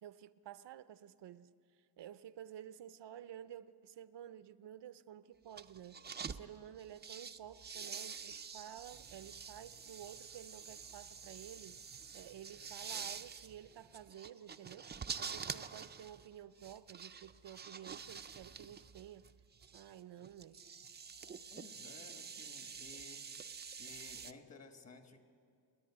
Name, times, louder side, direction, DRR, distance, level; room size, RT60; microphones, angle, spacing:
voice 1, 0.0-1.5 2.0-6.0 6.3-11.9 12.1-19.3 19.7-20.6, right 10 dB, 80° right, 0.7 m, -52 dB
sound 1, 5.5-6.4 6.8-24.3, right 6 dB, 25° right, 0.4 m, -47 dB
voice 2, 21.5-23.2 23.8-25.2, left 3 dB, 40° left, 1.4 m, -56 dB
29.0 x 10.5 x 9.6 m
wide cardioid pair, 175°, 41 cm